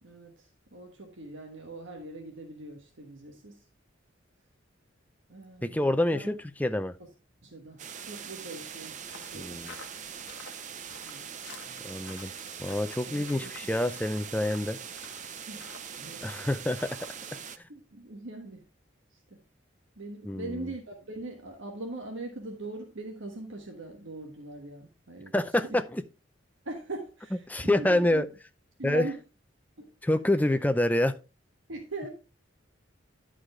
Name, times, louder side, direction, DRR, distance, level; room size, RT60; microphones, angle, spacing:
voice 1, 0.0-3.7 5.3-6.3 7.0-7.1 7.4-9.6 11.0-11.3 12.5-12.6 13.0-13.5 15.5-15.7 16.0-16.4 17.7-18.6 19.1-19.4 19.9-25.8 26.6-28.2 28.8-29.2 29.8-29.9 31.7-32.1, right 2 dB, 80° right, 1.4 m, -41 dB
voice 2, 5.6-6.3 6.6-6.9 9.3-9.7 11.8-12.3 12.6-14.8 16.2-17.0 20.3-20.7 25.3-25.8 27.5-28.2 28.8-29.1 30.0-31.1, left 1 dB, 10° left, 0.5 m, -27 dB
sound 1, 7.8-17.6, right 7 dB, 35° right, 0.5 m, -42 dB
sound 2, 9.0-17.2, left 5 dB, 65° left, 1.1 m, -52 dB
11.0 x 4.9 x 3.7 m
head